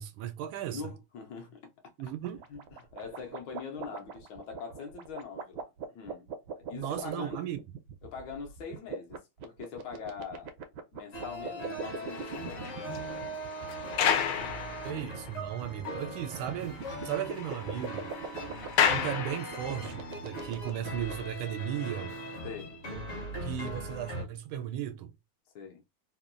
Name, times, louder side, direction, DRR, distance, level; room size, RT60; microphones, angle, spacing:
voice 1, 0.0-0.8 2.0-2.4 6.7-7.6 14.8-18.1 18.9-22.1 23.4-25.1, right 11 dB, 90° right, 1.4 m, -36 dB
voice 2, 0.7-1.9 2.5-6.3 6.6-7.5 8.0-10.5 10.9-12.8 13.1-13.4 14.3-14.4 14.9-15.0 22.4-22.8 23.1-23.3 25.5-25.8, left 6 dB, 70° left, 1.3 m, -43 dB
sound 1, 2.2-21.1, right 6 dB, 70° right, 1.1 m, -41 dB
sound 2, 11.1-24.2, right 1 dB, 50° left, 0.8 m, -40 dB
sound 3, 11.8-15.3 15.8-15.9 16.3-16.4 16.7-19.9, left 8 dB, 90° left, 1.4 m, -32 dB
3.5 x 2.2 x 2.4 m
omnidirectional pair, 2.2 m